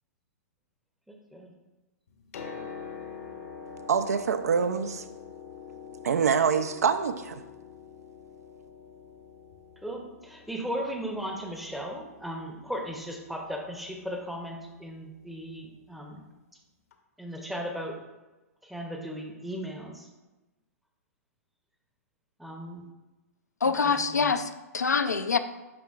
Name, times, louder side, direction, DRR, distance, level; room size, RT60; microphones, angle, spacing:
voice 1, 1.1-1.5 9.8-16.2 17.2-18.0 18.6-20.1 22.4-22.8 23.6-24.3, equal, ahead, 2 dB, 0.7 m, -37 dB
Piano, 2.1-15.8 16.9-17.0, left 6 dB, 65° left, 0.8 m, -46 dB
voice 2, 3.9-5.0 6.0-7.4, right 6 dB, 70° right, 11 dB, 0.5 m, -25 dB
voice 3, 23.6-25.4, left 5 dB, 85° left, 9 dB, 0.4 m, -25 dB
11.0 x 3.6 x 2.4 m, 1.1 s
figure-of-eight pair, 110°, 9 cm